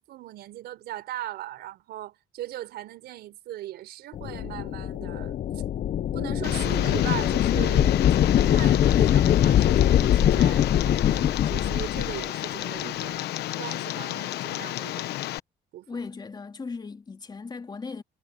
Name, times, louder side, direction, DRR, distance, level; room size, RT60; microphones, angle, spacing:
voice 1, 0.0-5.6 6.1-13.2 13.6-15.1 15.7-16.1, right 14 dB, 75° right, 4.5 m, -39 dB
sound 1, 4.1-12.2, left 10 dB, 50° left, 0.9 m, -22 dB
Tick, 6.4-15.4, left 15 dB, 80° left, 1.0 m, -31 dB
voice 2, 15.9-18.0, left 4 dB, 25° left, 2.7 m, -37 dB
cardioid pair, 110°, 17 cm